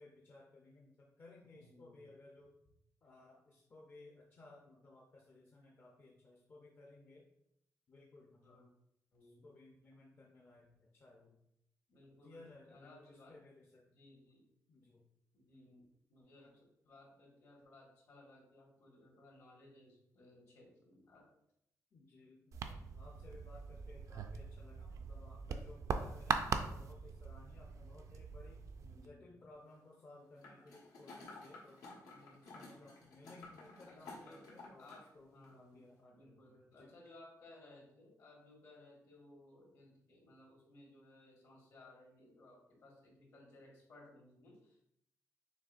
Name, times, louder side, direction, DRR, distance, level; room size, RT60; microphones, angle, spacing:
voice 1, 0.0-2.5 3.0-7.3 7.9-8.6 9.2-11.3 12.2-13.9 14.7-15.1 15.5-15.8 21.9-28.6 28.9-31.8 32.5-36.9, left 2 dB, 35° left, -2 dB, 0.6 m, -59 dB
voice 2, 1.5-2.1 8.4-8.7 9.1-9.4 11.9-13.4 13.9-14.5 15.3-15.8 16.1-21.2 28.8-29.4 32.1-32.8 33.9-34.4 34.8-44.8, left 1 dB, 60° left, -2 dB, 1.7 m, -61 dB
sound 1, 22.5-29.1, right 6 dB, 60° right, 0.4 m, -41 dB
sound 2, 30.4-35.1 35.4-35.5, left 3 dB, 85° left, 1.4 m, -54 dB
6.1 x 3.5 x 2.5 m, 0.78 s
wide cardioid pair, 165°, 6 cm